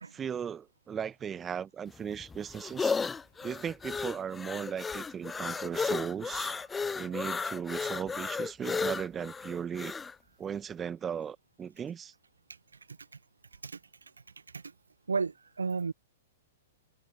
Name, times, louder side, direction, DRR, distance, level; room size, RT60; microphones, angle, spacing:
voice 1, 0.1-3.0 3.4-6.5 6.9-9.9 10.4-12.1, right 8 dB, 20° right, 1.6 m, -37 dB
sound 1, 1.9-10.1, left 5 dB, 10° left, 0.6 m, -34 dB
voice 2, 15.1-15.9, right 4 dB, 75° right, 0.7 m, -33 dB
figure-of-eight pair, 110°, 0 cm